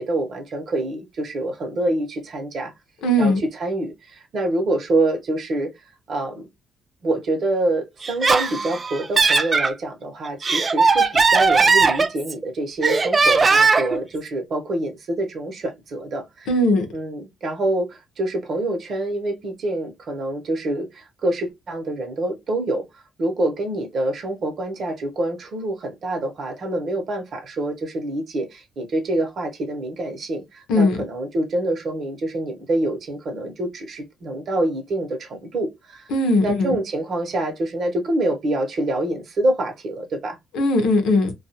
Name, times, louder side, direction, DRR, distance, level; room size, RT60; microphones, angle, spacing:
voice 1, 0.0-2.7 3.2-3.3 3.6-6.5 7.0-16.5 16.9-36.1 36.4-40.4, right 1 dB, 55° right, 0.9 m, -26 dB
voice 2, 3.0-3.4 16.5-16.9 30.7-31.0 36.1-36.8 40.5-41.3, left 1 dB, 90° left, 0.7 m, -19 dB
Laughter, 8.0-9.7 10.2-12.4 12.8-14.0, right 4 dB, 35° right, 0.3 m, -18 dB
2.4 x 2.3 x 2.8 m
cardioid pair, 90°, 0 cm